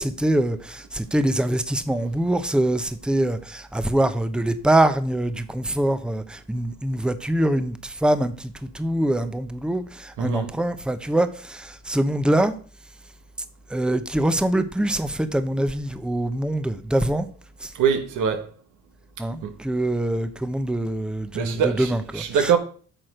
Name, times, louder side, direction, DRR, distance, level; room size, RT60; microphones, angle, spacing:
voice 1, 0.0-12.6 13.7-17.3 17.6-17.7 19.2-22.5, right 1 dB, 5° right, 0.8 m, -24 dB
voice 2, 10.2-10.5 17.8-18.5 19.4-19.5 21.3-22.6, right 7 dB, 85° right, 1.5 m, -23 dB
9.1 x 6.2 x 5.1 m
cardioid pair, 90°, 30 cm